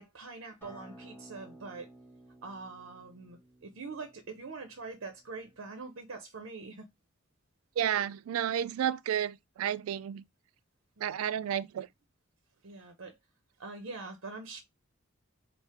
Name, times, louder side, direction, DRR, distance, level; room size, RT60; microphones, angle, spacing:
voice 1, 0.0-1.9 2.4-6.9 11.0-11.1 12.6-13.2 13.6-14.6, right 3 dB, 65° right, 0.7 m, -44 dB
Acoustic guitar, 0.6-5.8, right 1 dB, 10° left, 1.3 m, -55 dB
voice 2, 7.8-10.2 11.0-11.9, right 9 dB, 85° right, 0.3 m, -31 dB
3.2 x 2.1 x 4.2 m
head